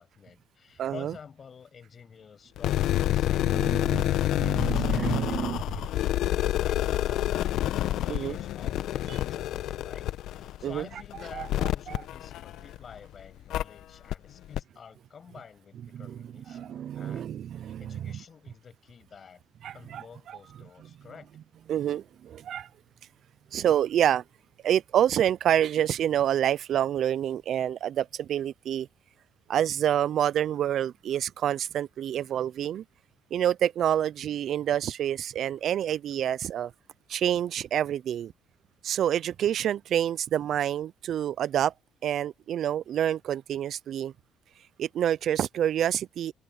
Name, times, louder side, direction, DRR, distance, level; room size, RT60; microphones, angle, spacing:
voice 1, 0.0-7.5 7.9-19.4 19.7-21.3 23.6-23.7, left 6 dB, 45° left, 6.6 m, -50 dB
voice 2, 0.8-1.1 3.5-4.1 4.4-5.6 8.1-8.3 9.1-9.2 10.6-10.8 11.3-12.0 15.9-16.2 16.5-18.0 19.6-20.4 21.7-22.7 23.5-24.2 24.6-28.9 29.5-32.8 33.3-36.7 37.1-38.3 38.8-41.7 42.0-44.1 44.6-46.3, right 10 dB, 60° right, 0.5 m, -28 dB
sound 1, 2.6-12.9 13.5-13.6 14.1-14.2 14.5-14.6, left 13 dB, 70° left, 1.0 m, -28 dB
open air
supercardioid pair, 75°, 0 cm